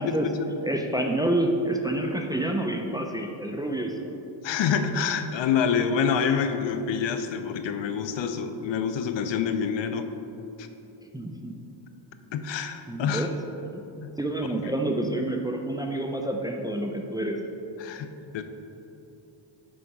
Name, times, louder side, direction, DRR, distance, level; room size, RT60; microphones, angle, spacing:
voice 1, 0.0-0.4 4.4-10.1 10.6-10.7 12.3-13.3 17.8-18.4, left 6 dB, 70° left, 8 dB, 0.6 m, -27 dB
voice 2, 0.6-4.0 11.1-11.6 12.9-13.3 13.6-13.8 14.2-17.4, right 1 dB, 10° right, 2 dB, 0.4 m, -28 dB
6.4 x 5.2 x 4.6 m, 2.9 s
cardioid pair, 105°, 46 cm